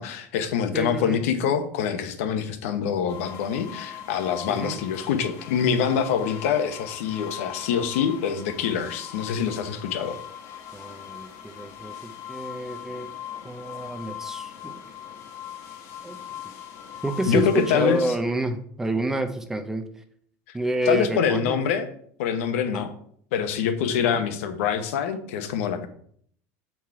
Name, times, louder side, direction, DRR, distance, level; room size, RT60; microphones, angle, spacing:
voice 1, 0.0-10.2 17.3-18.0 20.5-20.6 20.9-21.9 22.2-22.9 23.3-25.9, left 7 dB, 90° left, 8 dB, 1.0 m, -25 dB
voice 2, 0.7-1.2 4.5-4.8 10.7-13.1 13.4-14.8 16.0-16.2 17.0-20.0 20.5-21.6 22.7-22.8 24.0-24.2, right 2 dB, 5° right, 8 dB, 0.5 m, -29 dB
sound 1, 3.1-18.1, left 10 dB, 40° left, 1.1 m, -40 dB
7.2 x 4.6 x 4.7 m, 0.62 s
cardioid pair, 170°, 7 cm